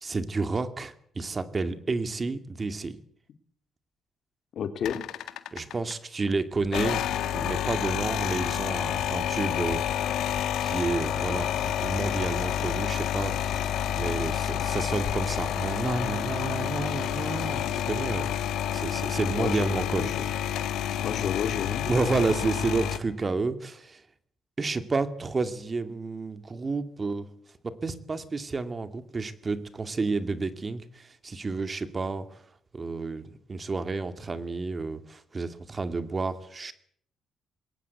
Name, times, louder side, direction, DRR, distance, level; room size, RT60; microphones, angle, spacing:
voice 1, 0.0-3.0 5.5-7.0 7.3-9.8 10.6-13.6 14.0-18.3 18.7-20.1 21.9-24.0 24.6-27.3 27.6-32.4 32.7-33.2 33.5-36.7, right 3 dB, 30° right, 11 dB, 2.2 m, -30 dB
voice 2, 4.5-5.1 19.4-20.2 21.0-21.9, left 8 dB, 65° left, 9 dB, 2.6 m, -31 dB
sound 1, 4.8-5.9 6.6-23.0, left 10 dB, 80° left, 1.8 m, -29 dB
21.0 x 18.0 x 8.2 m, 0.65 s
cardioid pair, 90°, 0 cm